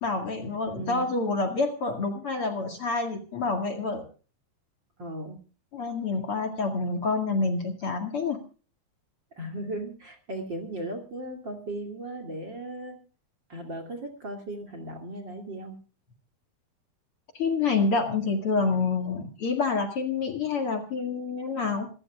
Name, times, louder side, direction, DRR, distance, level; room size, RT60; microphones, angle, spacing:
voice 1, 0.0-4.0 5.7-8.4 17.3-21.9, left 4 dB, 45° left, 5 dB, 2.6 m, -27 dB
voice 2, 0.7-1.1 5.0-5.4 9.4-13.0 13.5-15.8, right 1 dB, 35° right, 4 dB, 2.8 m, -37 dB
26.5 x 14.5 x 2.3 m, 0.37 s
omnidirectional pair, 4.0 m